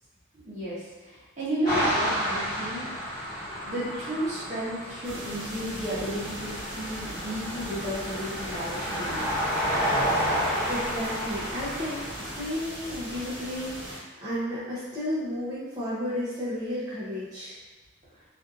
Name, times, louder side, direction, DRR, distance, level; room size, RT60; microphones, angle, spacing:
voice 1, 0.4-3.3 3.6-9.7, equal, 40° right, -10 dB, 0.9 m, -33 dB
sound 1, 1.6-12.4, equal, 15° left, 1.4 m, -31 dB
sound 2, 5.0-14.0, equal, 65° right, 1.0 m, -39 dB
voice 2, 10.4-17.6, left 1 dB, 20° right, -13 dB, 0.5 m, -33 dB
2.5 x 2.5 x 2.4 m, 1.3 s
head